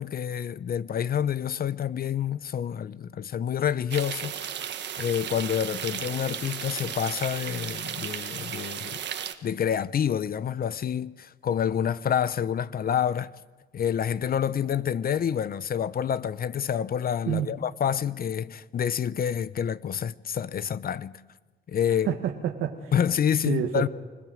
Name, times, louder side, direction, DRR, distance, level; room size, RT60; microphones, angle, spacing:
voice 1, 0.0-4.7 5.0-9.0 9.4-13.3 13.7-21.1 21.7-22.1 22.9-23.9, left 8 dB, 50° left, 0.7 m, -28 dB
sound 1, 3.9-9.3, right 9 dB, 60° right, 1.5 m, -35 dB
voice 2, 22.0-22.9 23.4-23.9, right 10 dB, 90° right, 1.6 m, -28 dB
25.5 x 17.5 x 7.8 m
cardioid pair, 90°, 20 cm